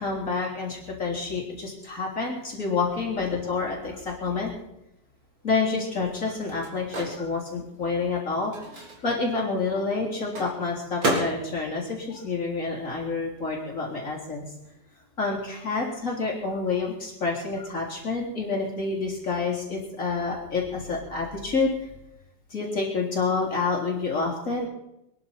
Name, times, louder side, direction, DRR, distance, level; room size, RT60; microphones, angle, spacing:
voice 1, 0.0-4.5 5.4-8.5 9.0-14.4 15.2-21.9 22.5-24.7, left 4 dB, 45° left, -2 dB, 4.0 m, -28 dB
Microwave oven, 5.1-13.2 13.5-15.4, right 1 dB, 90° right, 4.3 m, -35 dB
25.0 x 10.5 x 4.4 m, 0.85 s
omnidirectional pair, 2.0 m